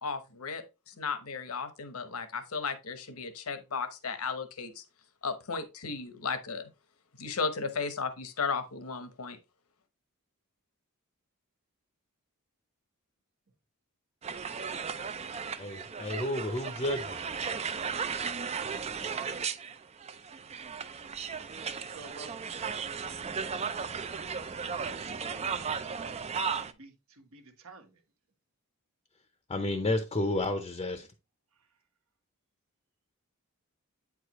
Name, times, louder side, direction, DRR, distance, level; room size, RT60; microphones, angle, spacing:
voice 1, 0.0-4.8 5.2-6.7 7.2-9.4, left 5 dB, 75° left, 1.0 m, -35 dB
sound 1, 14.2-26.7, right 6 dB, 30° right, 0.4 m, -35 dB
voice 2, 15.6-17.2 29.5-31.1, left 1 dB, 25° left, 0.6 m, -31 dB
voice 3, 21.9-22.3 26.6-27.9, right 3 dB, 70° right, 1.3 m, -49 dB
8.6 x 4.9 x 3.0 m
head